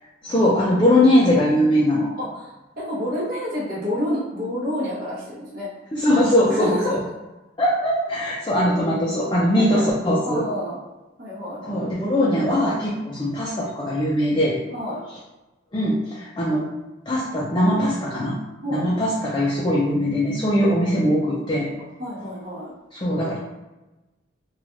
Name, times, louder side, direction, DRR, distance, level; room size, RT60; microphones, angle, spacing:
voice 1, 0.2-2.1 5.9-7.0 7.6-10.5 11.7-14.6 15.7-16.7 17.1-18.4 18.7-21.7 22.9-23.4, left 1 dB, 25° left, -5 dB, 0.4 m, -21 dB
voice 2, 2.2-2.5 2.8-5.7 6.4-7.0 8.6-8.9 9.5-9.9 10.2-10.8 11.2-11.8 14.7-15.0 18.6-18.8 22.0-22.7, equal, 45° right, -8 dB, 0.9 m, -29 dB
3.2 x 2.3 x 2.5 m, 1.1 s
head